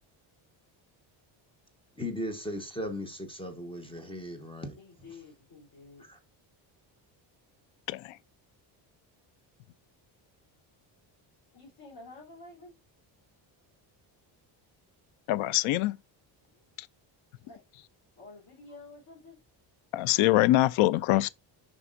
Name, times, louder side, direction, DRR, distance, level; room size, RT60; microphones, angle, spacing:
voice 1, 2.0-4.8 6.0-6.2, left 1 dB, 10° left, 1.0 m, -37 dB
voice 2, 4.8-6.1 11.5-12.8 16.4-16.6 17.4-17.6 18.2-19.4, left 3 dB, 45° left, 3.7 m, -50 dB
voice 3, 15.3-16.0 16.8-16.9 19.9-21.3, left 16 dB, 85° left, 0.6 m, -24 dB
7.0 x 5.4 x 2.5 m
cardioid pair, 135°, 47 cm